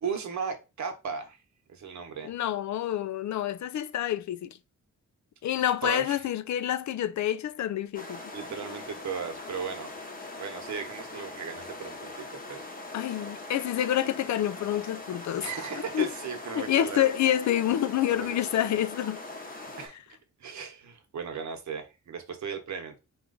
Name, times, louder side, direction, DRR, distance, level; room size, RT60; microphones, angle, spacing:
voice 1, 0.0-1.4 1.7-2.3 5.8-6.2 8.3-9.9 10.4-12.7 15.4-17.1 18.1-18.4 19.5-20.0 20.4-23.0, right 6 dB, 70° right, 1.0 m, -36 dB
voice 2, 2.2-4.6 5.4-8.2 12.9-15.5 15.9-16.1 16.5-19.2, left 11 dB, 70° left, 0.4 m, -28 dB
sound 1, 7.9-19.9, left 2 dB, 30° left, 0.8 m, -41 dB
4.4 x 2.5 x 3.8 m
wide cardioid pair, 140°, 30 cm